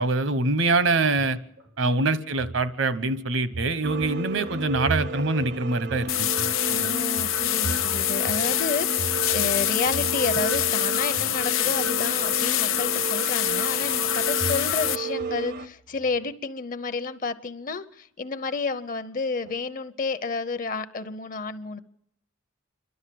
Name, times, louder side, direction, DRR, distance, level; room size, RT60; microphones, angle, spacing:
voice 1, 0.0-1.4 1.8-6.3 6.8-6.9, right 3 dB, 70° right, 14 dB, 1.0 m, -24 dB
sound 1, 1.6-1.9 2.3-3.1 3.5-10.7 11.0-11.5 14.2-14.9 15.2-16.2 19.2-19.5 19.8-19.9, right 3 dB, 90° right, 2.9 m, -38 dB
sound 2, 3.8-15.7, right 4 dB, 50° right, 0.7 m, -33 dB
sound 3, 6.1-15.0, left 13 dB, 85° left, 0.8 m, -25 dB
voice 2, 6.7-21.8, left 4 dB, 40° left, 12 dB, 0.7 m, -31 dB
27.5 x 12.0 x 7.6 m, 0.79 s
head